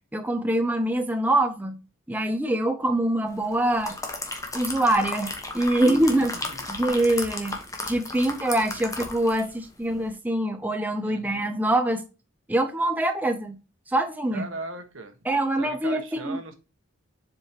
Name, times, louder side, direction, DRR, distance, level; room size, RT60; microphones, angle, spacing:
voice 1, 0.1-1.8 2.1-4.0 4.5-6.4 6.7-7.6 7.9-12.0 12.5-13.6 13.9-14.5 15.3-16.4, right 1 dB, 10° right, 0.5 m, -24 dB
sound 1, 3.5-9.5 9.9-10.0, left 3 dB, 15° left, 1.1 m, -34 dB
voice 2, 6.3-6.7 11.0-11.4 14.3-15.2 15.6-16.6, right 2 dB, 75° right, 1.2 m, -38 dB
7.4 x 4.8 x 2.8 m
head